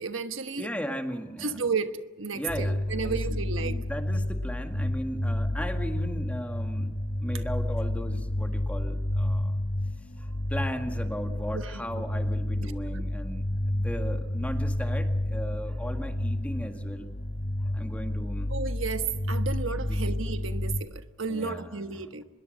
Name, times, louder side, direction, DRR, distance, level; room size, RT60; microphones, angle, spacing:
voice 1, 0.0-0.7 1.4-3.8 11.5-11.9 12.6-12.7 18.5-22.2, right 5 dB, 70° right, 1.2 m, -33 dB
voice 2, 0.6-1.6 2.3-9.6 10.2-17.1 17.6-18.5 19.9-20.1 21.3-22.1, equal, 5° left, 1.9 m, -37 dB
sound 1, 2.5-20.8, left 1 dB, 55° left, 2.2 m, -30 dB
25.0 x 21.5 x 6.6 m
head